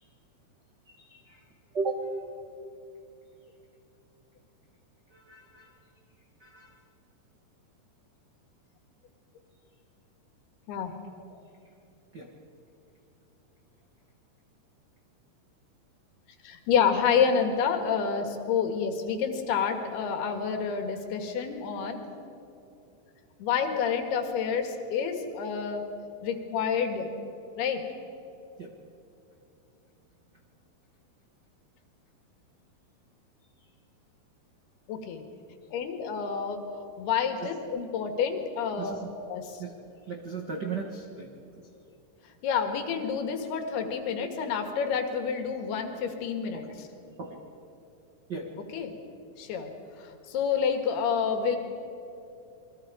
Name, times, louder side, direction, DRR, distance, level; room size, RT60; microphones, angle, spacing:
voice 1, 0.9-1.4 1.7-2.0 5.1-5.7 6.4-6.7 12.1-12.3 28.6-28.7 37.4-37.5 38.8-39.1 39.6-39.7 40.1-41.3 47.2-47.4 48.3-48.5, right 4 dB, 85° right, 1 dB, 0.9 m, -35 dB
voice 2, 10.7-11.2 16.4-22.0 23.4-25.8 26.2-27.1 27.6-27.9 34.9-35.2 35.7-36.7 37.0-39.6 42.4-46.9 48.7-48.9 49.4-49.7 50.3-51.6, left 6 dB, 75° left, 5 dB, 3.7 m, -28 dB
28.5 x 22.5 x 5.0 m, 2.8 s
omnidirectional pair, 4.7 m